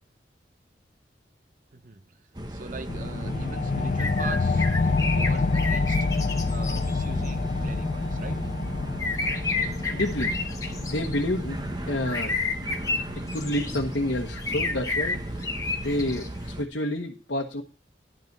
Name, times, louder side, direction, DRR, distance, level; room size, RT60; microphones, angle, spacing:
voice 1, 1.7-2.0 2.5-4.7 5.0-6.1 6.4-8.4, right 3 dB, 45° right, 0.7 m, -41 dB
sound 1, 2.3-16.6, right 1 dB, 25° right, 1.2 m, -36 dB
sound 2, 2.9-14.0, left 3 dB, 45° left, 0.4 m, -28 dB
sound 3, 4.0-7.3 9.0-11.2 12.0-13.8 14.4-16.3, left 3 dB, 20° left, 1.4 m, -30 dB
voice 2, 9.9-10.3 10.8-11.6 11.9-12.5 13.3-15.2 15.8-17.6, left 1 dB, 80° left, 1.2 m, -29 dB
11.0 x 5.4 x 6.6 m
head